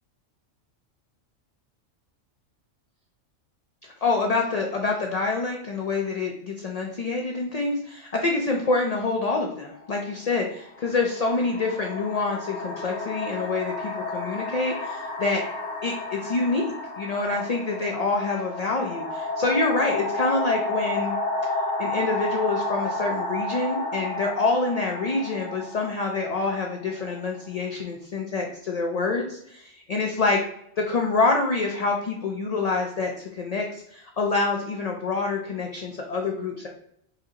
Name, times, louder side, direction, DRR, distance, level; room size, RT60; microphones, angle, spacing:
voice 1, 4.0-15.4 15.8-16.6 17.0-21.2 21.8-30.4 30.8-36.7, left 3 dB, 50° left, 0 dB, 0.5 m, -26 dB
sound 1, 9.7-9.9 10.8-27.5, left 2 dB, 65° left, 1.2 m, -31 dB
4.4 x 2.7 x 3.7 m, 0.72 s
omnidirectional pair, 1.3 m